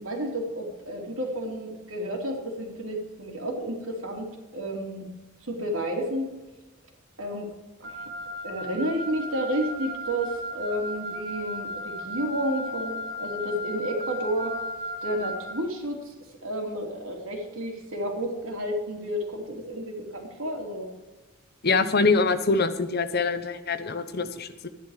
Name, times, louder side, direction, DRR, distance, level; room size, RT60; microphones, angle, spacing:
voice 1, 0.0-5.1 5.4-6.3 7.2-7.5 7.8-8.0 8.4-14.6 15.0-16.1 16.4-20.9, equal, 70° right, 0 dB, 3.0 m, -31 dB
Wind instrument woodwind instrument, 7.8-15.6, equal, 50° right, 2.0 m, -35 dB
voice 2, 21.6-24.7, left 4 dB, 45° left, 11 dB, 0.9 m, -24 dB
12.5 x 10.5 x 4.9 m, 1.1 s
head